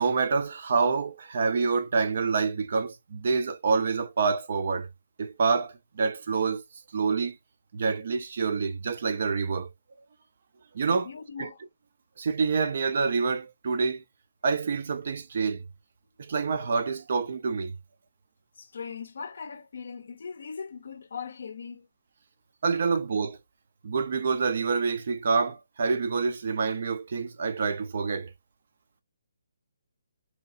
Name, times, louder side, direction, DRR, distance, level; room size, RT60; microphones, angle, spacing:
voice 1, 0.0-4.9 5.2-6.6 6.9-7.4 7.7-9.7 10.7-11.1 11.4-11.5 12.2-14.0 14.4-15.6 16.2-17.8 22.6-23.4 23.8-28.3, right 4 dB, 40° right, 0.4 m, -27 dB
voice 2, 11.0-11.6 18.6-21.9, left 6 dB, 55° left, 0.5 m, -39 dB
2.8 x 2.4 x 2.5 m
hypercardioid pair, 175°, 0 cm